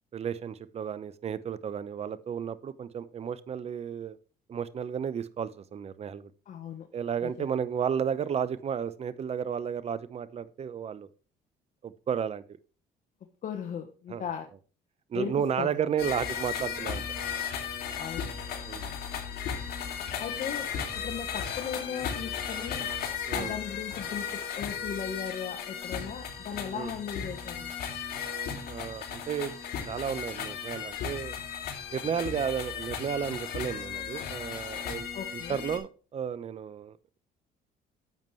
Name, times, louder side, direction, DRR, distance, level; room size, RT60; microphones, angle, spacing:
voice 1, 0.1-4.2 4.5-6.3 6.9-11.1 11.8-12.4 14.1-14.2 15.1-17.0 18.6-19.0 23.3-23.6 26.7-26.9 28.7-29.5 29.9-31.4 31.9-35.1 35.3-37.0, right 8 dB, 40° right, 0.7 m, -33 dB
voice 2, 6.5-6.9 7.2-7.3 13.4-14.5 15.1-15.8 17.9-18.3 20.2-20.7 21.0-22.9 23.3-27.7 35.1-35.6, left 7 dB, 50° left, 1.2 m, -37 dB
sound 1, 16.0-35.8, left 7 dB, 65° left, 2.6 m, -36 dB
10.5 x 7.2 x 3.2 m
cardioid pair, 110°, 17 cm